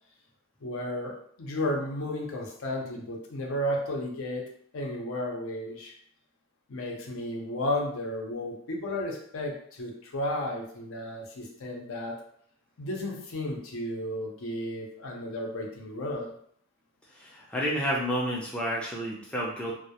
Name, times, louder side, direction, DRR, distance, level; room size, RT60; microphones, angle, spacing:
voice 1, 0.6-4.5 4.7-5.9 6.7-12.2 12.8-16.3, left 1 dB, 65° left, 0 dB, 0.5 m, -33 dB
voice 2, 17.1-19.7, equal, 5° left, -4 dB, 0.3 m, -30 dB
2.2 x 2.0 x 2.7 m, 0.64 s
head